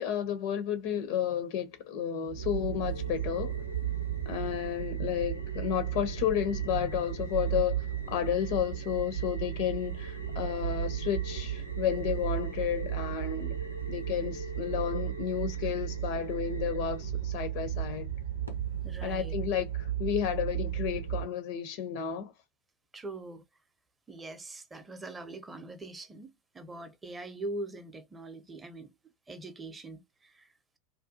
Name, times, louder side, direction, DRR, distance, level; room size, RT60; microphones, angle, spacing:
voice 1, 0.0-3.6 4.3-13.6 13.9-18.1 19.0-22.3, left 9 dB, 50° left, 0.4 m, -32 dB
sound 1, 2.3-21.2, right 9 dB, 85° right, 0.6 m, -34 dB
voice 2, 18.8-19.3 22.9-23.4 24.1-28.9 29.3-30.8, right 2 dB, 15° right, 0.5 m, -42 dB
2.4 x 2.2 x 2.6 m
figure-of-eight pair, 85°, 0 cm